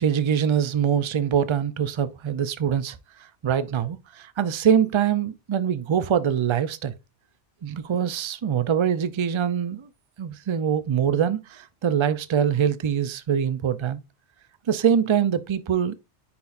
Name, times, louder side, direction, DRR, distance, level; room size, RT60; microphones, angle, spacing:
voice 1, 0.0-3.0 3.4-6.9 7.6-9.9 10.2-14.0 14.7-15.9, right 8 dB, 50° right, 0.3 m, -23 dB
9.6 x 4.3 x 2.5 m
omnidirectional pair, 1.2 m